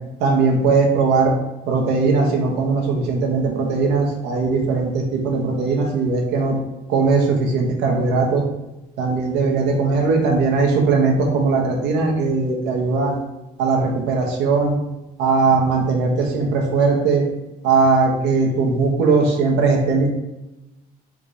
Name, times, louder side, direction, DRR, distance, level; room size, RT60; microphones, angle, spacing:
voice 1, 0.2-1.3 1.7-6.6 6.9-8.4 9.0-13.2 13.6-14.7 15.2-17.2 17.6-20.1, right 4 dB, 90° right, 0 dB, 1.0 m, -19 dB
3.7 x 2.7 x 4.8 m, 0.99 s
cardioid pair, 110°, 17 cm